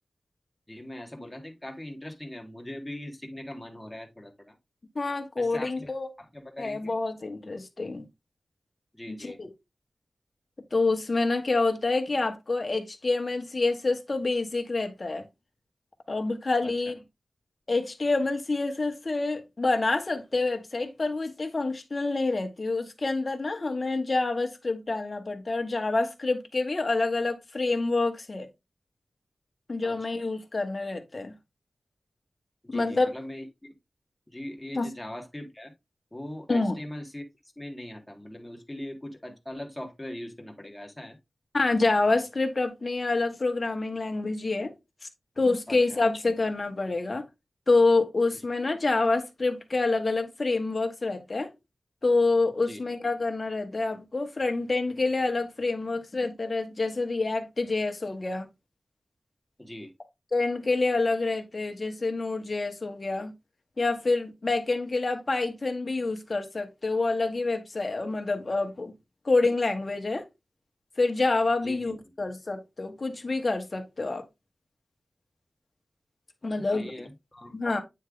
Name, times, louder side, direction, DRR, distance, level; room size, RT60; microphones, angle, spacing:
voice 1, 0.7-4.5 5.4-5.9 6.2-7.0 8.9-9.4 16.6-16.7 29.8-30.1 32.6-33.7 34.3-35.7 36.1-41.2 45.7-46.0 48.3-48.4 52.7-52.8 59.6-59.9 71.6-71.9 76.6-77.5, left 1 dB, 10° left, 1.6 m, -41 dB
voice 2, 4.9-6.1 6.6-8.1 9.1-9.5 10.7-15.2 16.1-16.9 17.7-28.5 29.7-31.3 32.7-33.1 34.7-34.9 36.5-36.7 41.5-44.7 45.4-47.2 47.7-51.5 52.0-58.5 60.3-63.3 63.8-68.9 69.2-70.2 71.0-74.2 76.4-76.9 77.5-77.8, left 3 dB, 40° left, 1.3 m, -27 dB
9.0 x 3.3 x 3.8 m
wide cardioid pair, 95°, 0 cm